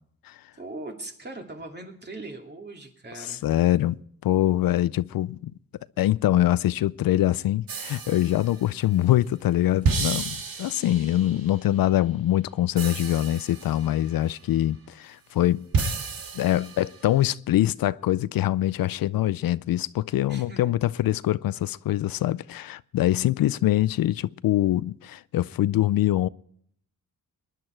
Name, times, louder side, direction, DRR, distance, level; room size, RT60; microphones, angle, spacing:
voice 1, 0.6-3.4 20.3-20.8, right 2 dB, 30° right, 2.6 m, -40 dB
voice 2, 3.1-5.5 6.0-15.7 16.3-26.3, left 13 dB, 75° left, 0.5 m, -24 dB
sound 1, 7.7-8.7 9.8-11.5 12.8-14.2 15.7-17.0, right 4 dB, 75° right, 2.0 m, -31 dB
22.0 x 11.0 x 4.5 m
cardioid pair, 105°, 35 cm